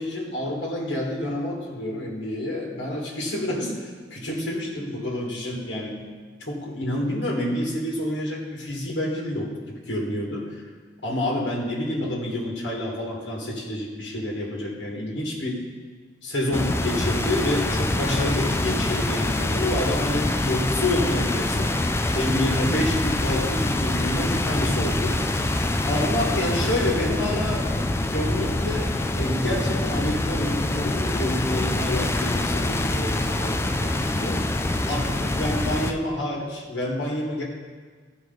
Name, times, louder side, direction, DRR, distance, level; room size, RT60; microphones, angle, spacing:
voice 1, 0.0-6.0 6.5-10.6 11.0-15.6 16.2-21.8 22.1-25.2 25.8-34.5 34.9-37.4, left 1 dB, 70° left, -2 dB, 2.0 m, -28 dB
sound 1, 16.5-35.9, left 2 dB, 15° left, 0.3 m, -25 dB
14.5 x 4.8 x 4.0 m, 1.5 s
head